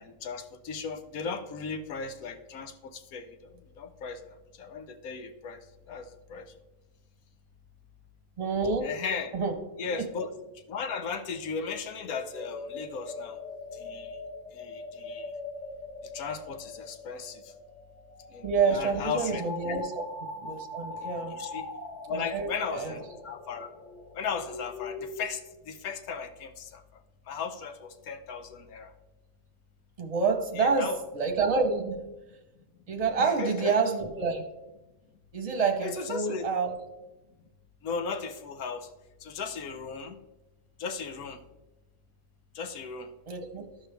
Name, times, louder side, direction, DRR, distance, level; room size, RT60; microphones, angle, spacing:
voice 1, 0.0-4.2 4.6-5.6 5.9-6.5 8.8-9.3 9.8-10.3 10.7-13.4 13.7-14.2 14.5-15.3 16.1-17.5 18.3-19.8 21.3-21.7 22.1-23.7 24.1-26.8 27.3-28.9 30.5-31.0 33.2-33.7 35.8-36.5 37.8-38.9 39.2-40.2 40.8-41.4 42.5-43.1, left 5 dB, 85° left, 7 dB, 1.3 m, -36 dB
voice 2, 8.4-8.9 9.3-9.6 9.9-10.0 18.4-20.0 20.4-21.4 22.1-22.9 30.0-32.1 32.9-34.4 35.3-36.7 43.3-43.6, right 4 dB, 30° right, 4 dB, 0.9 m, -28 dB
sound 1, 12.0-25.3, left 3 dB, 55° left, 1.2 m, -41 dB
13.5 x 5.4 x 3.4 m, 1.1 s
omnidirectional pair, 1.5 m